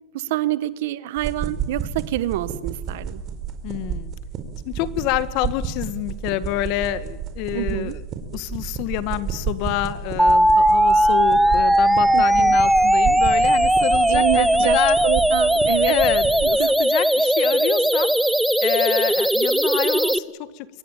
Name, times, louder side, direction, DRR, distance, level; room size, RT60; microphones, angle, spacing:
voice 1, 0.1-3.2 7.5-8.0 12.1-12.6 14.1-16.0 16.4-16.7, right 15 dB, 70° right, 16 dB, 1.4 m, -27 dB
sound 1, 1.2-16.5, right 7 dB, 40° right, 4.9 m, -31 dB
voice 2, 3.6-4.1 4.7-8.0 8.3-15.0 15.9-18.1 18.6-20.7, left 15 dB, 55° left, 14 dB, 1.7 m, -27 dB
sound 2, 10.2-20.2, right 1 dB, 5° right, 0.9 m, -18 dB
25.5 x 22.5 x 9.1 m, 1.1 s
supercardioid pair, 120°, 0 cm